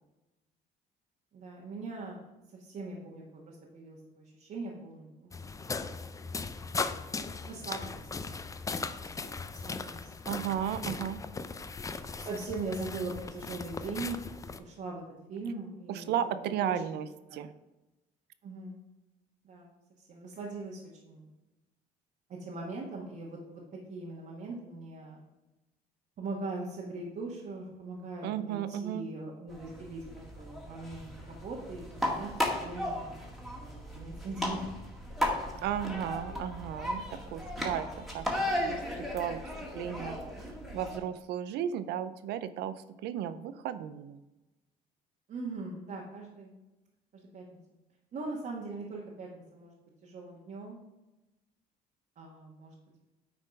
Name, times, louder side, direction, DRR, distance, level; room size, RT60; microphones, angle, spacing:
voice 1, 1.3-2.2 2.5-5.3 7.4-8.4 8.7-10.5 12.2-14.2 14.5-15.0 15.3-16.2 16.6-16.7 17.3-17.4 18.4-18.8 19.4-19.7 20.0-21.3 22.3-23.6 23.9-25.2 26.2-30.1 30.3-32.3 32.6-33.2 33.5-34.6 35.5-35.6 45.3-46.5 47.1-47.6 48.1-49.7 50.0-50.8 52.2-52.7, right 3 dB, 50° right, -3 dB, 1.5 m, -41 dB
sound 1, 5.3-14.6, left 4 dB, 20° left, 0.5 m, -38 dB
voice 2, 10.3-11.2 15.9-17.5 28.2-29.1 35.6-39.4 39.7-44.2, right 9 dB, 80° right, 13 dB, 0.6 m, -35 dB
sound 2, 29.5-41.0, left 1 dB, ahead, 1.9 m, -36 dB
8.9 x 4.3 x 5.4 m, 1.0 s
cardioid pair, 110°, 17 cm